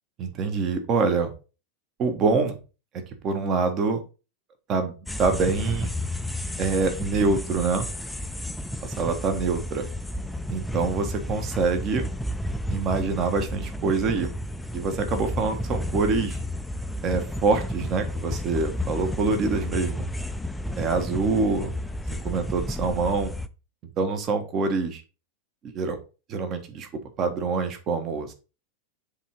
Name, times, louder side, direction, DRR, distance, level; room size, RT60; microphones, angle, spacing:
voice 1, 0.2-1.3 2.0-2.6 3.2-4.0 4.7-4.9 5.2-5.9 6.6-7.9 8.8-9.9 10.5-12.1 12.7-14.3 14.7-16.4 17.0-20.1 20.8-21.7 22.2-23.3 24.0-25.0 25.6-26.0 26.3-26.9 27.2-28.3, right 4 dB, 30° right, 7 dB, 1.3 m, -25 dB
sound 1, 5.1-23.5, left 1 dB, 5° left, 0.5 m, -32 dB
7.3 x 3.7 x 4.5 m, 0.33 s
figure-of-eight pair, 90°, 0 cm